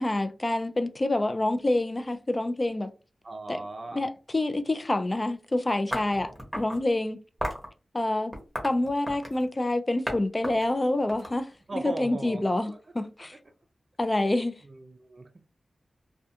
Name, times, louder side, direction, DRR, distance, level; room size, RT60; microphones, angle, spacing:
voice 1, 0.0-2.9 3.5-3.6 4.0-7.2 7.9-8.3 8.6-11.5 11.8-13.3 14.0-14.6, left 2 dB, 30° left, 0.3 m, -27 dB
voice 2, 3.2-4.0 11.7-12.8 13.3-13.4 14.6-15.4, right 2 dB, 50° right, 0.4 m, -39 dB
sound 1, 5.9-6.8 7.4-7.7 8.3-9.4 10.1-10.2 10.4-11.9, equal, ahead, 0.9 m, -34 dB
2.3 x 2.2 x 2.7 m
cardioid pair, 60°, 0 cm